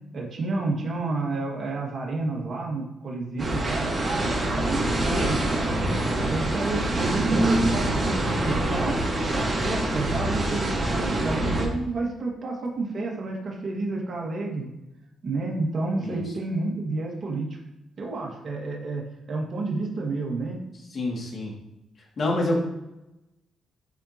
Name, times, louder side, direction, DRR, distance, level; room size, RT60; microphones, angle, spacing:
voice 1, 0.1-5.8 6.2-9.0 9.3-14.7 15.2-17.5 18.0-20.6, right 3 dB, 45° right, -1 dB, 1.8 m, -30 dB
sound 1, 3.4-11.6, right 1 dB, 30° right, 2.4 m, -25 dB
voice 2, 20.9-21.5 22.2-22.6, left 2 dB, 50° left, -2 dB, 2.3 m, -27 dB
9.0 x 5.5 x 2.9 m, 0.92 s
cardioid pair, 90°, 0 cm